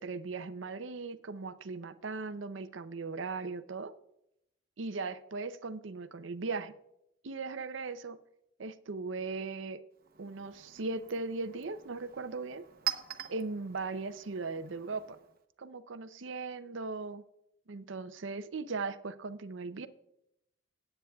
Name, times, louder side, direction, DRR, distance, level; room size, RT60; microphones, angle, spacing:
voice 1, 0.0-3.9 4.8-6.7 7.2-8.2 8.6-9.8 10.2-12.7 13.3-15.2 15.6-17.2 17.7-19.9, right 3 dB, 80° right, 12 dB, 0.6 m, -38 dB
Chink clink, 9.9-15.4, right 11 dB, 50° right, 0.8 m, -44 dB
18.0 x 8.8 x 2.3 m, 0.80 s
head